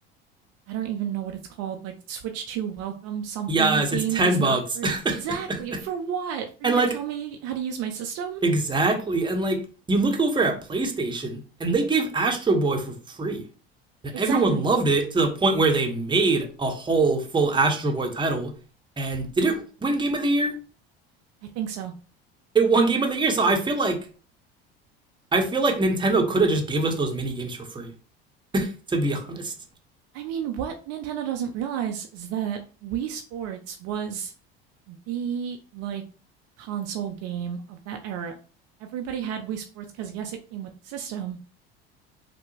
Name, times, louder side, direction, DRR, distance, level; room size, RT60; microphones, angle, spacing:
voice 1, 0.7-8.4 14.1-14.7 21.4-21.9 30.1-34.3 34.9-36.0 36.6-38.3 38.8-41.4, right 9 dB, 55° right, 4 dB, 0.5 m, -32 dB
voice 2, 3.5-5.8 6.6-6.9 8.4-9.6 9.9-13.4 14.0-18.5 19.0-20.5 22.5-24.0 25.3-27.9 28.5-29.5, right 3 dB, 15° right, 3 dB, 0.8 m, -23 dB
3.3 x 2.1 x 3.1 m, 0.37 s
hypercardioid pair, 75°, 30 cm